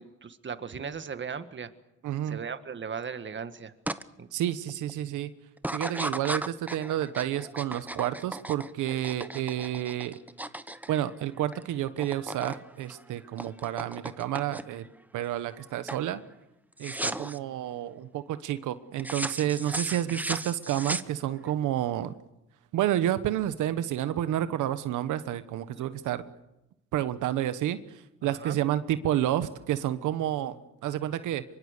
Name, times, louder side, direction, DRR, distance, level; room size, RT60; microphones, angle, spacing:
voice 1, 0.0-1.7 2.3-3.7 4.2-4.3 17.0-17.2 25.9-26.0 28.2-28.6, right 6 dB, 40° right, 10 dB, 1.8 m, -37 dB
voice 2, 2.0-2.4 4.3-5.3 5.7-10.2 10.9-14.9 15.1-16.2 16.8-22.2 22.7-26.3 26.9-31.4, right 12 dB, 85° right, 12 dB, 1.2 m, -30 dB
sound 1, 3.9-4.0 4.5-4.9 5.6-11.6 11.9-12.6 12.9-14.9 15.3-15.6 15.9-16.1 16.8-17.4 19.0-21.5, right 1 dB, 5° right, 0.9 m, -36 dB
25.0 x 23.5 x 6.7 m, 0.90 s
cardioid pair, 90°, 30 cm